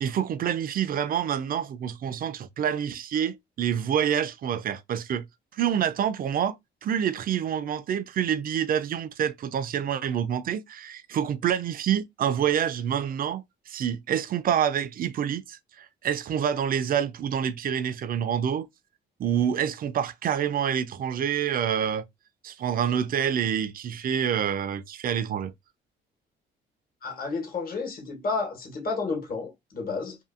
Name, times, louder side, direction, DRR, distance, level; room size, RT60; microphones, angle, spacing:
voice 1, 0.0-5.2 5.5-6.6 6.8-18.7 19.2-22.0 22.4-25.5, right 9 dB, 45° right, 0.4 m, -27 dB
voice 2, 27.0-30.2, left 4 dB, 45° left, 1.1 m, -31 dB
2.6 x 2.6 x 2.4 m
cardioid pair, 90°, 20 cm